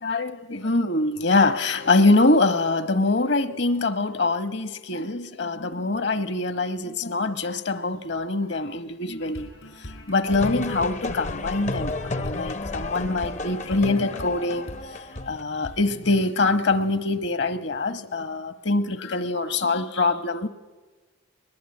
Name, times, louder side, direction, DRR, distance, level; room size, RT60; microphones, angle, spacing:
voice 1, 0.0-9.5 9.8-15.0 15.3-20.5, left 2 dB, 55° left, 1.2 m, -24 dB
sound 1, 9.3-14.9 15.2-15.3 15.6-15.8, equal, 80° left, 5.6 m, -41 dB
sound 2, 10.3-15.4, left 2 dB, 35° left, 0.7 m, -32 dB
21.0 x 21.0 x 9.7 m
head